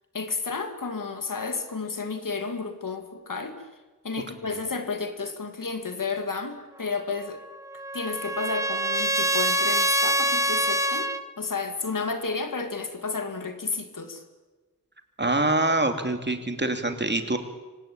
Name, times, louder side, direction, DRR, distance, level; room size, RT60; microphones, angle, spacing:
voice 1, 0.1-3.6 4.0-7.4 7.9-14.2, left 4 dB, 65° left, 7 dB, 2.6 m, -32 dB
Trumpet, 7.3-11.2, right 1 dB, 10° right, 1.4 m, -25 dB
voice 2, 15.2-17.4, right 2 dB, 30° right, 6 dB, 2.7 m, -25 dB
26.0 x 17.5 x 8.8 m, 1.3 s
wide cardioid pair, 55°, 34 cm